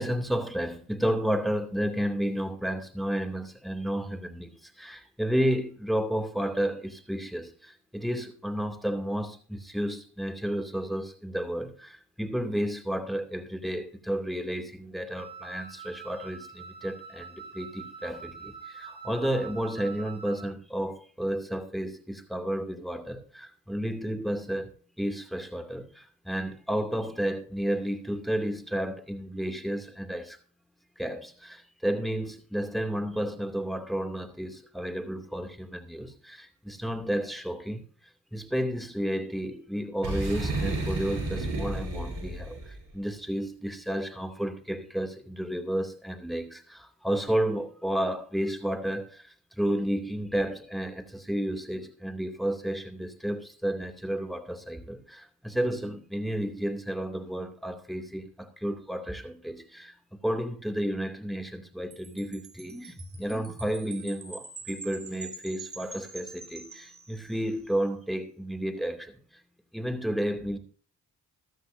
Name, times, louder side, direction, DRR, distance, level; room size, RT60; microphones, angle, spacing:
voice 1, 0.0-24.7 25.0-30.4 31.0-37.9 38.3-60.0 60.2-69.2 69.7-70.6, equal, ahead, 2.4 m, -32 dB
Wind instrument woodwind instrument, 15.2-20.5, right 6 dB, 55° right, 6.9 m, -45 dB
Boom, 40.0-42.8, right 2 dB, 70° right, 7.0 m, -31 dB
Wind chime, 61.9-67.6, right 3 dB, 30° right, 3.8 m, -45 dB
14.5 x 12.5 x 2.6 m
hypercardioid pair, 40°, 44 cm